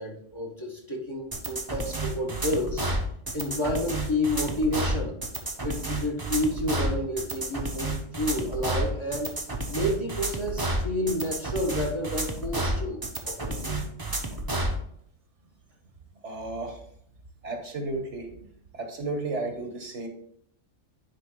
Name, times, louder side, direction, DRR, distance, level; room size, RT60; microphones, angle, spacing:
voice 1, 0.0-2.8 3.3-5.2 5.6-9.4 9.7-13.8, left 1 dB, 25° left, 0 dB, 1.3 m, -30 dB
sound 1, 1.3-14.8, right 2 dB, 20° right, 0.9 m, -30 dB
voice 2, 16.2-16.8 17.4-18.3 18.7-20.1, right 2 dB, 70° right, 4 dB, 1.6 m, -33 dB
9.7 x 3.7 x 3.8 m, 0.67 s
omnidirectional pair, 1.3 m